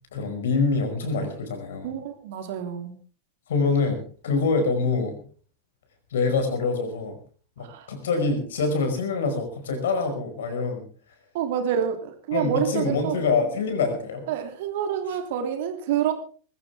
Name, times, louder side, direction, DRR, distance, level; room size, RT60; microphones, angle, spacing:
voice 1, 0.1-1.9 3.5-5.2 6.1-7.2 7.6-10.9 12.3-14.3, left 4 dB, 60° left, 6 dB, 5.2 m, -25 dB
voice 2, 1.8-2.9 7.6-7.9 11.3-13.2 14.3-16.1, right 9 dB, 55° right, 5 dB, 3.0 m, -27 dB
21.5 x 15.0 x 3.5 m, 0.41 s
figure-of-eight pair, 90°, 0 cm